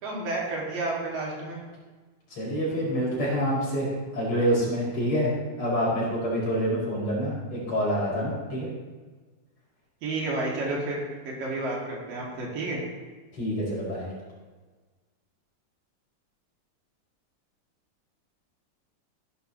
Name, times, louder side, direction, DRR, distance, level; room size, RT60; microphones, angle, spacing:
voice 1, 0.0-1.6 10.0-12.8, right 2 dB, 80° right, -3 dB, 4.1 m, -31 dB
voice 2, 2.4-8.7 13.3-14.1, equal, 40° left, -6 dB, 5.5 m, -27 dB
15.5 x 11.5 x 3.2 m, 1.3 s
omnidirectional pair, 3.9 m